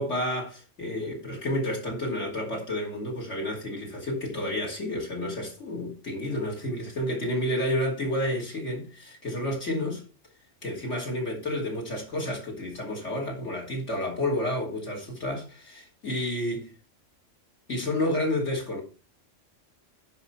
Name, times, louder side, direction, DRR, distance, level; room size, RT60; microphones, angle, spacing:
voice 1, 0.0-10.0 10.6-16.7 17.7-18.8, left 1 dB, 70° left, 3.0 m, -30 dB
10.5 x 5.1 x 5.7 m
omnidirectional pair, 1.3 m